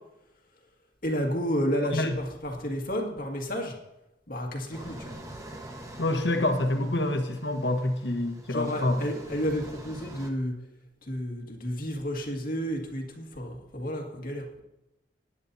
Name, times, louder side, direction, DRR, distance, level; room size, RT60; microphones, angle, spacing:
voice 1, 1.0-3.8 4.3-5.1 8.5-10.5 11.1-14.6, equal, 50° left, 1 dB, 2.1 m, -31 dB
sound 1, 4.7-10.3, right 1 dB, 20° right, 1.3 m, -45 dB
voice 2, 6.0-9.0, left 1 dB, 80° left, 5 dB, 1.4 m, -27 dB
19.5 x 9.8 x 2.8 m, 0.95 s
head